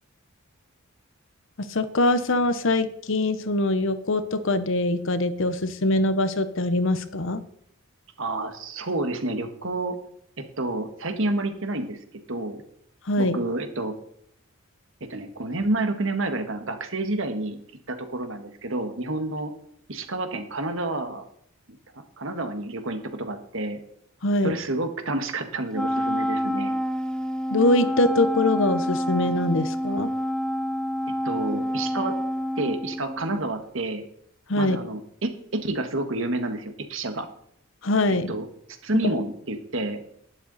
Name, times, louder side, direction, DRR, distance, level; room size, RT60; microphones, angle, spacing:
voice 1, 1.7-7.4 13.1-13.4 24.2-24.5 27.5-30.1 34.5-34.8 37.8-38.3, left 2 dB, 60° left, 12 dB, 0.9 m, -23 dB
voice 2, 8.2-10.0 10.4-12.0 12.3-12.6 13.2-13.9 15.0-17.6 17.9-19.5 19.9-21.2 21.9-23.8 24.4-26.7 31.2-32.2 32.6-34.0 34.5-37.3 38.3-38.5 38.8-40.0, right 2 dB, 60° right, 7 dB, 1.6 m, -29 dB
Wind instrument woodwind instrument, 25.7-33.4, equal, 5° left, 0.5 m, -27 dB
11.5 x 11.0 x 4.1 m, 0.68 s
head